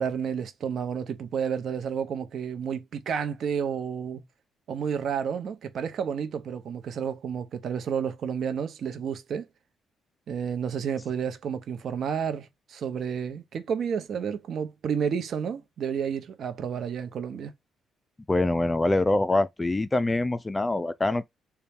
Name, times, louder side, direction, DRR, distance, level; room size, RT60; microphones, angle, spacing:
voice 1, 0.0-4.2 4.7-9.5 10.3-17.5, right 7 dB, 60° right, 0.7 m, -31 dB
voice 2, 18.3-21.3, left 2 dB, 20° left, 0.4 m, -24 dB
4.0 x 2.3 x 3.5 m
cardioid pair, 90°, 0 cm